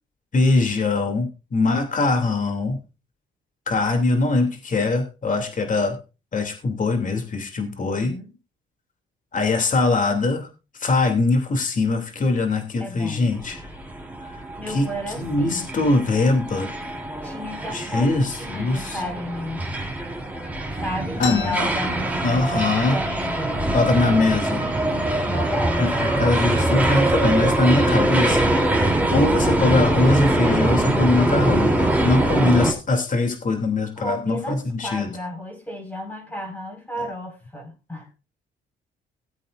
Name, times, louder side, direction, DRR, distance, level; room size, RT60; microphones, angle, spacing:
voice 1, 0.3-2.8 3.7-6.0 6.3-8.1 9.3-10.5 10.8-13.7 14.7-14.9 15.2-16.7 17.7-19.0 20.3-20.4 21.2-21.5 22.2-23.0 23.7-24.6 25.8-35.1, left 3 dB, 40° left, 5 dB, 2.9 m, -22 dB
voice 2, 7.8-8.3 12.8-13.3 14.6-15.7 17.2-19.6 20.8-23.7 24.6-25.9 28.9-29.9 33.9-38.1, equal, 10° left, 0 dB, 4.9 m, -33 dB
sound 1, 13.3-32.7, right 1 dB, 5° right, 3.2 m, -23 dB
sound 2, 21.2-22.8 23.1-23.2 23.5-24.1 24.7-24.9 25.6-25.7 26.2-26.7, left 6 dB, 75° left, 3.0 m, -34 dB
18.5 x 8.3 x 2.5 m, 0.29 s
cardioid pair, 90°, 20 cm